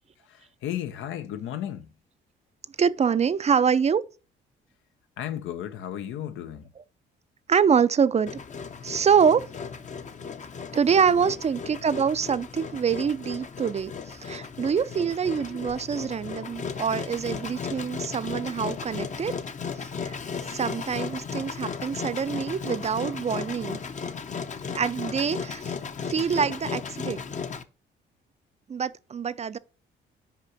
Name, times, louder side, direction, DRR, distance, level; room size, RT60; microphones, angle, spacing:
voice 1, 0.3-1.9 5.2-6.7 11.1-11.3, left 11 dB, 80° left, 0.8 m, -34 dB
voice 2, 2.8-4.0 7.5-8.3 8.8-9.5 10.7-19.4 20.0-20.1 20.5-23.8 24.7-25.7 26.1-27.2 28.7-29.6, right 7 dB, 35° right, 0.4 m, -25 dB
Engine, 8.3-27.6, left 5 dB, 40° left, 0.7 m, -35 dB
5.7 x 4.9 x 5.9 m
cardioid pair, 90°, 20 cm